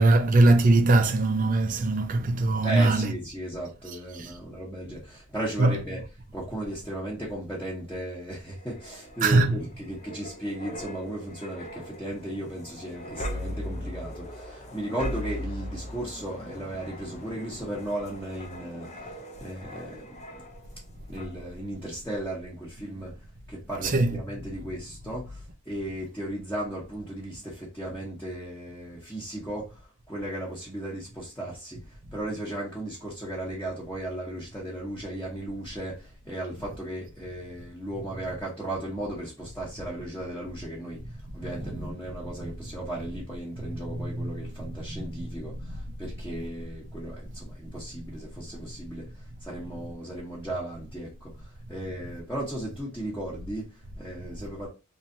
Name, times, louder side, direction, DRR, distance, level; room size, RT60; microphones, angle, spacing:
voice 1, 0.0-3.1 5.6-5.7 9.2-9.6 23.9-24.2, right 2 dB, 40° right, 0.4 m, -20 dB
voice 2, 2.6-6.0 6.3-20.4 21.1-54.7, right 1 dB, 10° left, 0.9 m, -36 dB
sound 1, 8.5-20.8 21.2-21.4, left 1 dB, 30° left, 0.6 m, -39 dB
3.1 x 2.6 x 2.6 m
head